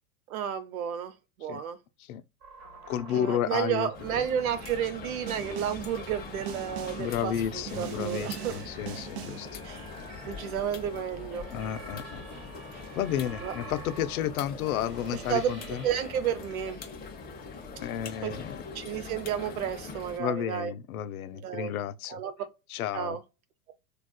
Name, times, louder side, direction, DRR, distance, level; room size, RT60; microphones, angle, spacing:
voice 1, 0.3-1.1 1.4-1.8 3.1-8.6 9.6-9.9 10.2-11.5 12.7-12.8 13.4-13.5 15.1-15.5 15.8-16.8 18.2-18.3 18.7-20.7 21.3-21.7 22.1-22.3 22.9-23.2, right 9 dB, 70° right, 0.8 m, -32 dB
sound 1, 2.4-16.3, right 2 dB, 25° right, 1.3 m, -48 dB
voice 2, 2.9-3.9 7.0-9.6 11.5-12.2 12.7-15.8 17.8-18.6 20.2-22.2 22.7-23.2, left 10 dB, 70° left, 0.6 m, -32 dB
sound 2, 3.9-20.2, left 4 dB, 20° left, 0.7 m, -43 dB
Snare drum, 5.3-5.9 6.5-7.1 7.7-9.5, right 13 dB, 50° right, 0.4 m, -40 dB
3.5 x 2.4 x 2.2 m
hypercardioid pair, 95°, 45 cm